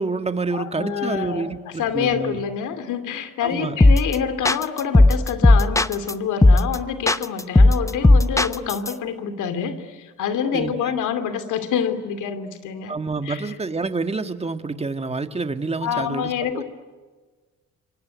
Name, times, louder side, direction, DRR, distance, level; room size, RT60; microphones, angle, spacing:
voice 1, 0.0-2.4 3.4-3.7 10.5-10.7 12.9-16.6, right 3 dB, 20° right, 8 dB, 1.7 m, -28 dB
voice 2, 0.5-12.9 13.2-13.5 15.8-16.6, left 7 dB, 80° left, 11 dB, 2.7 m, -27 dB
sound 1, 3.8-4.1 4.4-6.1 6.4-6.8 7.1-8.9, left 2 dB, 10° left, 0.8 m, -14 dB
26.5 x 24.0 x 9.3 m, 1.4 s
cardioid pair, 90°, 30 cm